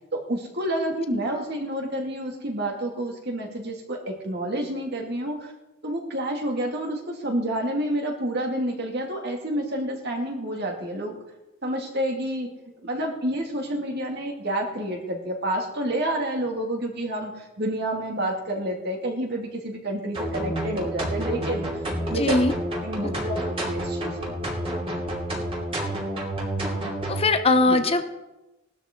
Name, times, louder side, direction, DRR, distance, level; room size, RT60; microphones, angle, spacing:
voice 1, 0.1-5.5 5.8-11.1 11.6-12.5 12.8-21.8 22.1-22.4 22.8-24.4 27.7-27.8, right 1 dB, 55° right, 1 dB, 2.5 m, -29 dB
sound 1, 20.1-27.2, right 1 dB, 30° right, 2.9 m, -29 dB
voice 2, 22.1-22.5 23.0-23.1 27.1-28.1, left 2 dB, 30° left, 8 dB, 0.8 m, -21 dB
17.5 x 12.5 x 3.9 m, 1.0 s
head